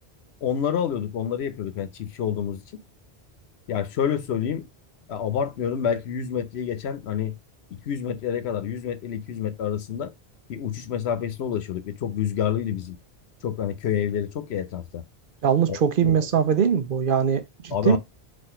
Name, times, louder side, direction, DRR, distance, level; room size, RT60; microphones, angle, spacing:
voice 1, 0.4-2.8 3.7-4.7 5.1-7.4 7.7-10.1 10.5-13.0 13.4-15.0 15.7-16.2 17.7-18.0, left 8 dB, 90° left, 1.0 m, -28 dB
voice 2, 15.4-18.0, right 7 dB, 60° right, 0.8 m, -21 dB
4.2 x 2.5 x 4.3 m
omnidirectional pair, 1.1 m